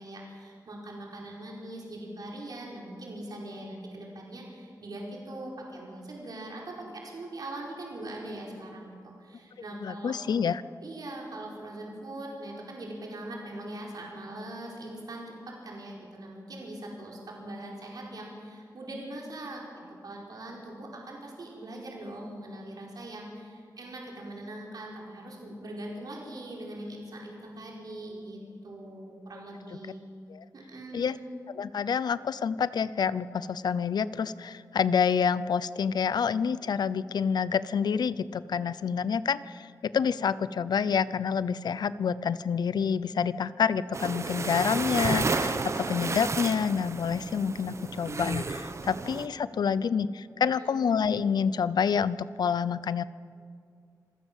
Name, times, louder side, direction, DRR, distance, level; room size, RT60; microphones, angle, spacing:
voice 1, 0.0-10.2 10.8-19.6 20.0-30.0 30.5-31.3 50.5-50.8, right 1 dB, 70° right, -2 dB, 4.7 m, -41 dB
voice 2, 9.8-10.6 30.3-30.4 30.9-31.2 31.6-53.0, left 6 dB, 85° left, 17 dB, 0.6 m, -28 dB
sound 1, 43.9-49.3, right 3 dB, 45° right, 1.1 m, -32 dB
26.5 x 16.0 x 7.4 m, 2.3 s
wide cardioid pair, 120°, 7 cm